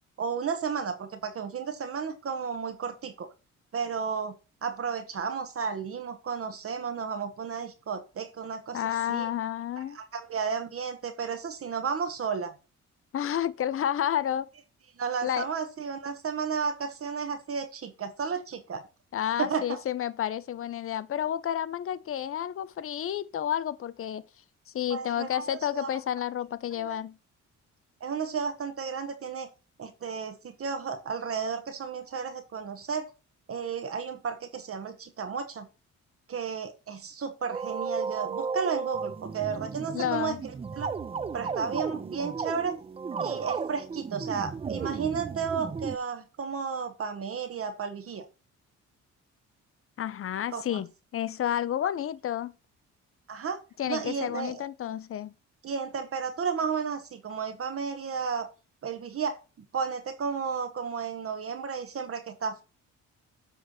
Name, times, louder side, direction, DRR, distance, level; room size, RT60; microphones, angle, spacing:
voice 1, 0.2-3.3 3.7-4.3 4.6-8.8 9.1-9.3 9.9-12.5 15.0-18.8 19.4-19.8 24.9-25.9 26.8-27.0 28.0-29.5 29.8-33.1 33.5-35.7 36.3-40.4 40.7-40.9 41.3-42.7 43.2-48.2 50.5-50.8 53.3-53.6 53.9-54.7 55.6-58.5 58.8-59.4 59.7-62.6, right 6 dB, 50° right, 1.1 m, -33 dB
voice 2, 8.7-10.0 13.1-14.5 15.2-15.5 19.1-24.2 24.7-27.1 39.9-40.4 50.0-52.5 53.8-55.3, left 10 dB, 45° left, 0.6 m, -30 dB
sound 1, 37.5-46.0, right 5 dB, 20° right, 0.4 m, -34 dB
7.7 x 3.3 x 6.3 m
cardioid pair, 90°, 30 cm